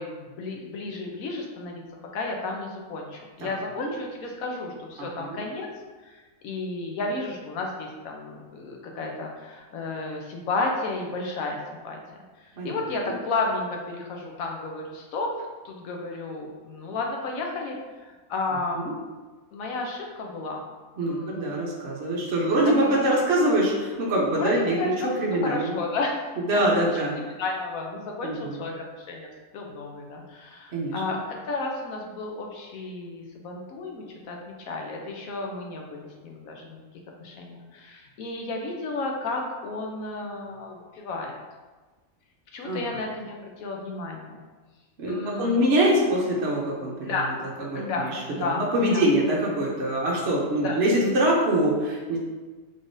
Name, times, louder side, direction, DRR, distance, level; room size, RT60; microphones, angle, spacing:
voice 1, 0.0-1.8 2.1-5.7 6.0-6.2 6.4-12.0 12.4-15.3 15.6-19.0 19.5-20.6 21.0-21.5 22.8-23.0 24.4-25.1 25.4-26.2 26.5-26.6 26.9-29.3 29.5-36.8 37.2-41.4 42.5-44.4 45.0-45.6 47.0-47.3 47.7-49.1 50.6-50.8, left 3 dB, 70° left, 1 dB, 1.0 m, -32 dB
voice 2, 3.4-3.9 5.0-5.4 12.6-12.8 18.7-18.9 21.0-25.8 26.5-27.1 28.2-28.6 30.7-31.0 42.6-42.8 45.0-47.2 47.6-52.2, right 1 dB, 60° right, -4 dB, 0.8 m, -24 dB
3.7 x 3.4 x 2.6 m, 1.3 s
omnidirectional pair, 1.6 m